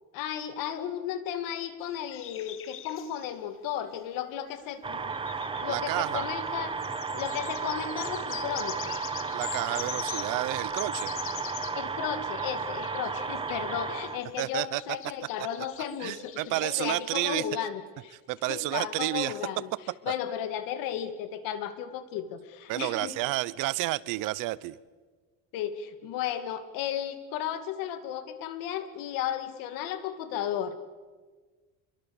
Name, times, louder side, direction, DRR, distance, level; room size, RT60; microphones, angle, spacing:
voice 1, 0.1-5.1 5.6-6.8 7.1-8.9 11.7-18.1 18.5-19.7 20.0-23.2 25.5-30.7, left 10 dB, 85° left, 2.5 m, -34 dB
sound 1, 1.8-3.3 4.5-4.6 5.1-11.9 12.1-17.3, left 11 dB, 40° left, 1.3 m, -43 dB
sound 2, 4.8-14.2, right 5 dB, 15° right, 1.2 m, -33 dB
voice 2, 5.6-6.2 9.3-11.1 14.4-14.8 16.0-17.4 18.3-19.4 19.9-20.1 22.7-24.8, right 19 dB, 75° right, 0.9 m, -30 dB
27.5 x 23.0 x 7.2 m
cardioid pair, 165°, 32 cm